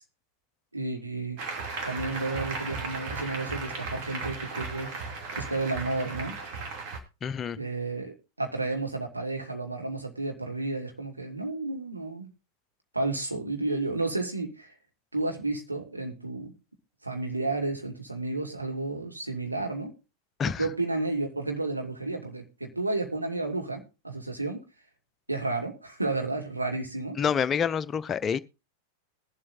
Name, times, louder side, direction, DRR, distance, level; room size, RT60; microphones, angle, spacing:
voice 1, 0.7-1.4 1.8-6.4 7.6-12.3 12.9-14.7 15.1-16.5 17.0-19.9 20.6-24.6 25.3-27.2, right 2 dB, 85° right, 2.1 m, -32 dB
Applause, 1.4-7.0, right 4 dB, 45° right, 2.6 m, -36 dB
voice 2, 7.2-7.6 20.4-20.7 27.2-28.4, left 7 dB, 25° left, 0.6 m, -27 dB
21.0 x 7.6 x 2.6 m
figure-of-eight pair, 90°, 0 cm